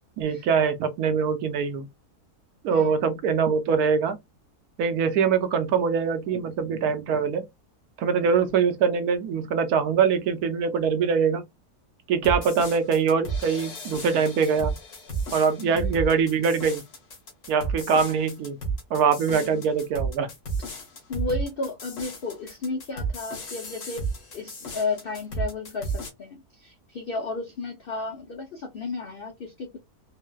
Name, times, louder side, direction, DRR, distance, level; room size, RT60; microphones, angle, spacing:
voice 1, 0.2-1.9 2.6-4.2 4.8-7.4 8.0-11.4 12.1-14.7 15.3-16.8 17.5-18.6 18.9-20.3, right 6 dB, 75° right, 1.1 m, -23 dB
voice 2, 2.7-3.0 15.6-16.0 19.3-19.7 21.1-24.1 24.3-29.8, left 3 dB, 70° left, 0.5 m, -33 dB
sound 1, 12.2-26.1, right 3 dB, 55° left, 1.4 m, -33 dB
3.8 x 2.1 x 2.2 m
omnidirectional pair, 1.7 m